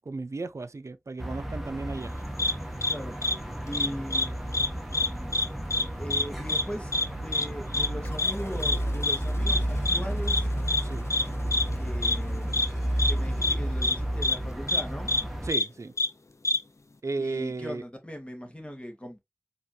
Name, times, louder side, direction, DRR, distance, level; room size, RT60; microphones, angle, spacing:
voice 1, 0.1-2.1 10.8-11.1 15.4-15.9 17.0-17.8, right 3 dB, 85° right, 0.5 m, -34 dB
sound 1, 1.2-15.5, right 1 dB, ahead, 1.5 m, -32 dB
sound 2, 2.4-2.5 2.8-2.9 3.2-3.3 3.7-4.3 4.5-4.7 4.9-5.5 5.7-5.8 6.1-6.2 6.5-6.6 6.9-7.1 7.3-7.5 7.7-7.9 8.2-8.3 8.6-8.8 9.0-9.2 9.5-9.6 9.9-10.0 10.3-10.4 10.7-10.8 11.1-11.2 11.5-11.6 12.0-12.2 12.5-12.7 13.0-13.1 13.4-13.5 13.8-14.0 14.2-14.4 14.7-14.8 15.1-15.2 15.5-15.6 16.0-16.1 16.4-16.6, left 2 dB, 85° left, 0.6 m, -25 dB
voice 2, 2.8-3.2 3.7-4.4 6.0-6.9 7.2-10.5 11.8-12.5 13.0-15.1 17.2-19.2, equal, 25° left, 1.9 m, -39 dB
sound 3, 8.0-14.5, left 2 dB, 60° left, 0.9 m, -45 dB
5.4 x 3.4 x 2.8 m
wide cardioid pair, 45°, 5 cm